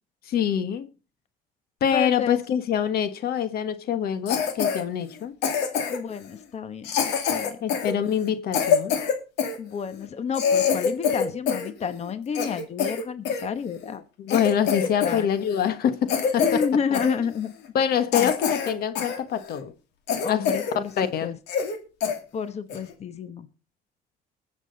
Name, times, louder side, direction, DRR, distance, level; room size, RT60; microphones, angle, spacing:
voice 1, 0.3-0.9 1.8-5.4 7.6-9.0 14.2-16.6 16.9-17.0 17.7-19.7 20.3-20.4 21.0-21.3, left 8 dB, 65° left, 1.3 m, -25 dB
voice 2, 1.9-2.4 5.9-7.6 9.6-14.0 14.8-15.3 16.4-17.5 18.1-18.3 20.2-20.9 21.2-21.4 22.3-23.5, left 6 dB, 40° left, 1.1 m, -30 dB
Cough, 4.3-4.8 5.4-6.1 6.8-9.6 10.0-10.1 10.3-11.7 12.0-13.4 13.9-14.0 14.3-15.2 15.5-15.7 16.1-16.7 16.9-17.1 17.6-17.7 18.1-19.2 19.6-19.7 20.1-20.8 21.1-21.2 21.5-21.8 22.0-22.2 22.7-22.9, left 7 dB, 90° left, 2.4 m, -25 dB
21.0 x 7.5 x 3.9 m
cardioid pair, 110°, 17 cm